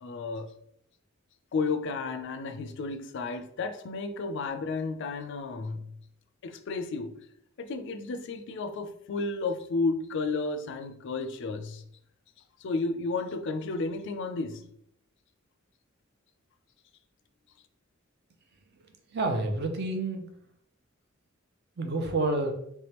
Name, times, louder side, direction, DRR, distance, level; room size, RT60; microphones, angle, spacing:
voice 1, 0.0-0.5 1.5-5.9 6.4-7.2 7.6-11.8 12.6-14.6, left 3 dB, 60° left, 0.4 m, -32 dB
voice 2, 19.1-20.2 21.8-22.5, right 2 dB, 55° right, 0.6 m, -28 dB
3.4 x 3.2 x 2.9 m
head